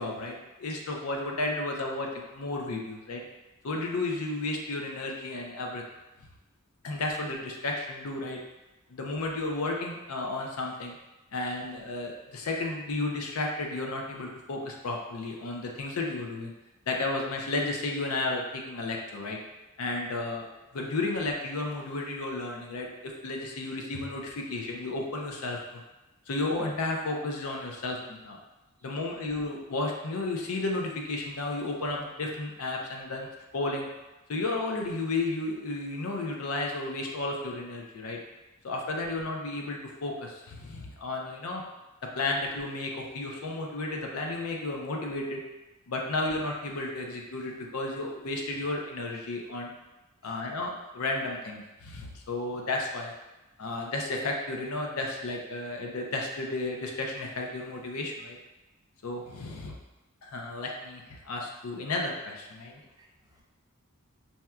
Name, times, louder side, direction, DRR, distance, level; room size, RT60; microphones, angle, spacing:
voice 1, 0.0-3.2 3.6-5.8 6.8-8.4 8.9-11.0 11.3-16.5 16.9-19.4 19.8-20.5 20.7-25.8 26.3-28.4 28.8-33.3 33.5-33.9 34.3-38.2 38.6-41.6 42.2-45.4 45.9-49.8 50.2-53.1 53.6-58.4 59.0-59.7 60.2-62.8, left 2 dB, 70° left, 0 dB, 0.5 m, -33 dB
voice 2, 62.8-63.4, right 1 dB, 15° right, -2 dB, 0.4 m, -61 dB
4.1 x 2.3 x 2.3 m, 1.0 s
head